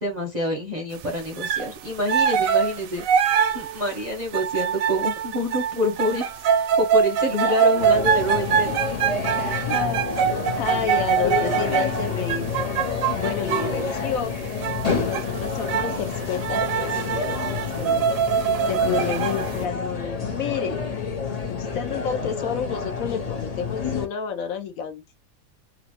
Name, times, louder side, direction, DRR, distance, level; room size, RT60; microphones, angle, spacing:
voice 1, 0.0-3.0 3.5-6.4 6.8-8.7 17.1-17.3, left 1 dB, 40° right, 0.6 m, -27 dB
sound 1, 1.4-1.7 2.1-13.8 14.6-15.2 15.6-16.0 16.4-19.5, right 8 dB, 70° right, 0.9 m, -24 dB
voice 2, 7.4-7.8 9.4-10.3 10.5-12.5 13.1-14.5 15.0-20.8 21.5-25.0, left 7 dB, 70° left, 1.0 m, -30 dB
sound 2, 7.8-24.1, left 5 dB, 50° left, 0.4 m, -28 dB
3.0 x 2.6 x 2.8 m
omnidirectional pair, 1.7 m